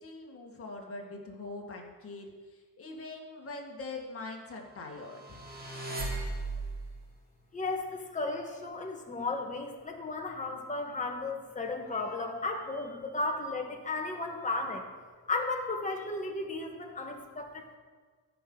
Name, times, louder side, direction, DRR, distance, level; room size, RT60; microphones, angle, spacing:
voice 1, 0.0-5.4, left 3 dB, 35° left, 0 dB, 2.0 m, -43 dB
sound 1, 5.1-6.9, right 2 dB, 25° right, 2.0 m, -36 dB
voice 2, 7.5-14.8 15.3-17.8, left 3 dB, 20° left, 1 dB, 1.5 m, -34 dB
15.0 x 6.2 x 3.9 m, 1.5 s
cardioid pair, 115°, 40 cm